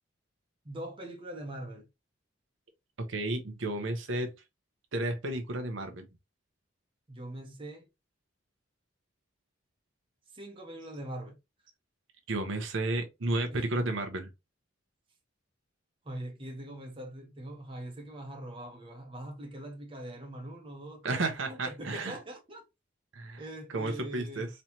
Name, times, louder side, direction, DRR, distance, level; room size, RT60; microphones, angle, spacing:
voice 1, 0.6-1.9 7.1-7.8 10.3-11.4 13.5-13.9 16.0-22.6 23.4-24.5, right 1 dB, 25° right, 1.0 m, -42 dB
voice 2, 3.1-4.3 4.9-6.0 12.3-14.3 21.0-22.2 23.1-23.4 23.7-24.5, right 2 dB, 75° right, 0.9 m, -32 dB
4.3 x 3.2 x 2.8 m
head